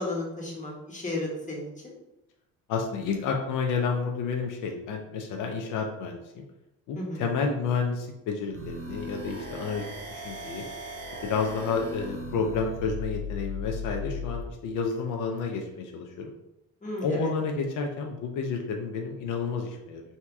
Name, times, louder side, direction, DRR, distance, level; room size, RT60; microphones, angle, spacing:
voice 1, 0.0-1.9 6.9-7.2 16.8-17.3, left 2 dB, 25° left, -3 dB, 1.6 m, -33 dB
voice 2, 2.7-6.4 6.9-9.8 10.1-10.6 11.2-16.3 17.0-20.0, left 5 dB, 90° left, 2 dB, 0.7 m, -30 dB
sound 1, 8.5-14.5, left 2 dB, 45° right, 1.4 m, -37 dB
3.5 x 2.9 x 4.6 m, 0.89 s
cardioid pair, 90°, 30 cm